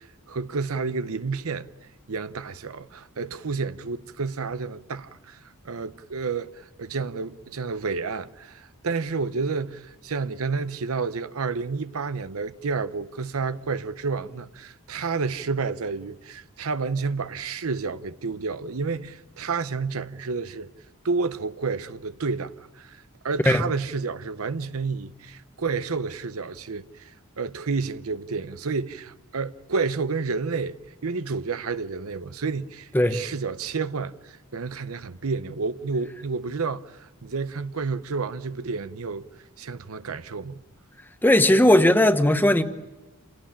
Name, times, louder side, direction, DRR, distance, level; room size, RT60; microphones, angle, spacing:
voice 1, 0.0-1.7 2.1-5.4 5.6-6.5 6.8-20.7 21.0-27.1 27.4-39.3 39.6-40.6, right 4 dB, 75° right, 0.8 m, -30 dB
voice 2, 41.2-42.6, left 1 dB, 10° left, 1.1 m, -17 dB
28.5 x 17.0 x 8.8 m
head